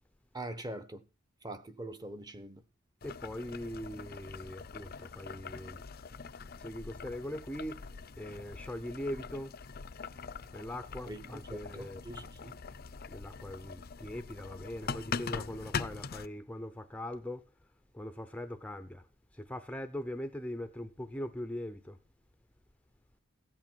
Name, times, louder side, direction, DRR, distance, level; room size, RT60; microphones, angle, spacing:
voice 1, 0.3-1.0 1.4-2.6 11.1-12.5, right 1 dB, 20° right, 1.1 m, -43 dB
Boiling, 3.0-16.3, left 5 dB, 45° left, 0.6 m, -43 dB
voice 2, 3.0-5.8 6.6-7.9 8.2-9.5 10.5-12.0 13.1-17.5 17.9-19.1 19.3-22.0, left 1 dB, 5° left, 0.7 m, -41 dB
16.0 x 8.7 x 4.5 m
head